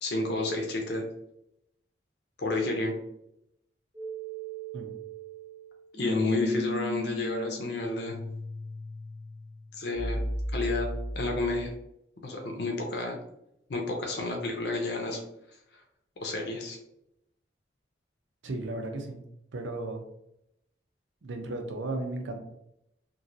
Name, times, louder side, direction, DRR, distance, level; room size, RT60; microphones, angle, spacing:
voice 1, 0.0-1.0 2.4-2.9 6.0-8.2 9.7-10.2 10.5-10.9 11.1-11.7 12.2-13.2 13.7-15.2 16.2-16.8, left 2 dB, 60° left, 1 dB, 0.6 m, -30 dB
sound 1, 3.9-11.8, equal, 20° right, 0.6 m, -36 dB
voice 2, 18.4-19.2 19.5-20.0 21.2-22.4, right 2 dB, 85° right, 4 dB, 0.6 m, -35 dB
3.0 x 2.6 x 2.6 m, 0.80 s
head